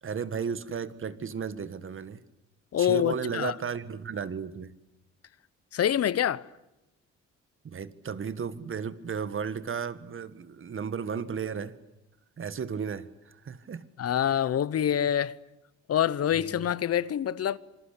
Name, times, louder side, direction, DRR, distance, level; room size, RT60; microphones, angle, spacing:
voice 1, 0.0-2.2 2.8-4.7 7.6-11.7 12.4-13.8 16.3-16.7, right 6 dB, 45° right, 1.7 m, -34 dB
voice 2, 2.7-3.5 5.7-6.4 14.0-15.4 15.9-17.6, left 10 dB, 55° left, 0.9 m, -26 dB
27.0 x 22.0 x 8.4 m
cardioid pair, 100°, 29 cm